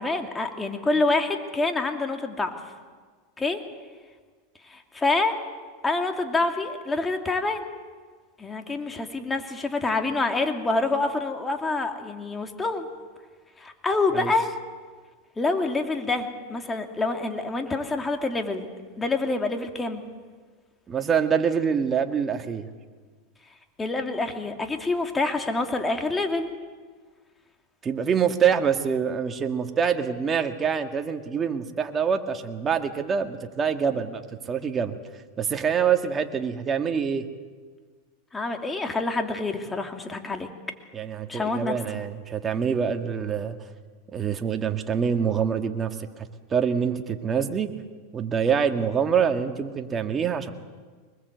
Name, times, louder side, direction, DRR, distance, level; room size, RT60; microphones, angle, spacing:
voice 1, 0.0-2.6 3.4-3.6 4.7-5.4 5.8-7.6 8.4-12.9 13.6-14.5 15.4-18.7 19.0-20.0 23.8-26.5 38.3-40.5 41.3-41.8, left 3 dB, 15° left, 5 dB, 2.6 m, -26 dB
voice 2, 20.9-22.7 27.8-34.2 34.5-35.0 35.4-37.3 40.9-43.6 44.1-47.7 48.1-50.5, right 7 dB, 25° right, 6 dB, 2.0 m, -25 dB
24.0 x 21.0 x 8.2 m, 1.5 s
supercardioid pair, 120°, 0 cm